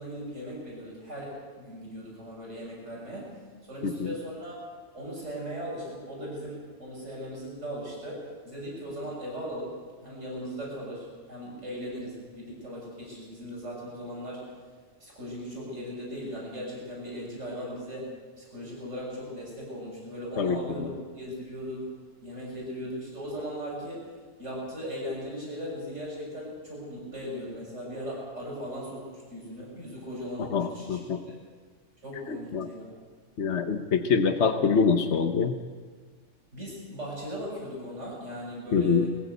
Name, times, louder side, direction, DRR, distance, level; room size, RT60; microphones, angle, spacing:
voice 1, 0.0-4.6 4.9-9.7 10.0-14.4 15.0-18.1 18.4-21.9 22.2-24.1 24.4-31.0 31.3-31.4 32.0-33.0 36.5-39.1, equal, 70° right, -4 dB, 6.9 m, -38 dB
voice 2, 20.4-20.9 30.4-31.2 32.3-32.7 33.4-35.5 38.7-39.1, left 5 dB, 65° left, 5 dB, 1.3 m, -25 dB
21.5 x 15.5 x 8.1 m, 1.5 s
omnidirectional pair, 1.3 m